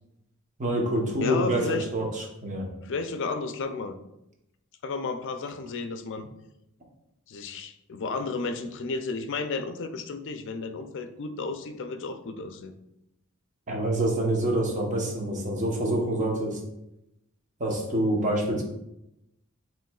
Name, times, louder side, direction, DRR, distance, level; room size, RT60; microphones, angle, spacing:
voice 1, 0.6-2.7 13.7-16.6 17.6-18.6, right 1 dB, 35° right, 0 dB, 0.9 m, -26 dB
voice 2, 1.2-1.9 2.8-3.9 4.8-6.3 7.3-12.7, left 4 dB, 60° left, 8 dB, 0.5 m, -32 dB
7.5 x 3.0 x 2.3 m, 0.86 s
head